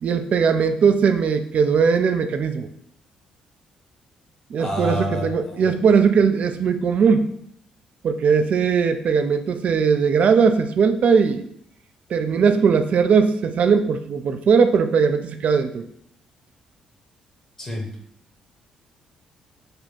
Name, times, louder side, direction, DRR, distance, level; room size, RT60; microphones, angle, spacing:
voice 1, 0.0-2.7 4.5-7.3 8.0-11.5 12.1-15.8, right 6 dB, 45° right, 8 dB, 0.3 m, -19 dB
voice 2, 4.6-5.7 17.6-17.9, left 1 dB, 35° left, -1 dB, 1.0 m, -28 dB
5.1 x 2.2 x 4.0 m, 0.70 s
figure-of-eight pair, 40°, 3 cm